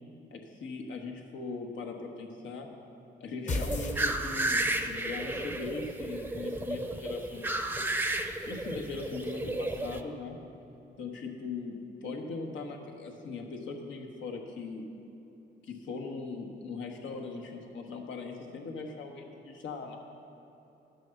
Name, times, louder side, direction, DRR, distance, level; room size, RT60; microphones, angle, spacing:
voice 1, 0.3-2.7 3.2-7.5 8.4-10.4 11.0-14.8 15.6-20.0, left 4 dB, 80° left, 2 dB, 1.3 m, -40 dB
sound 1, 3.5-4.7, left 2 dB, 40° left, 1.0 m, -34 dB
sound 2, 3.5-10.0, right 2 dB, 10° right, 0.6 m, -33 dB
11.5 x 6.3 x 6.5 m, 3.0 s
cardioid pair, 90°, 19 cm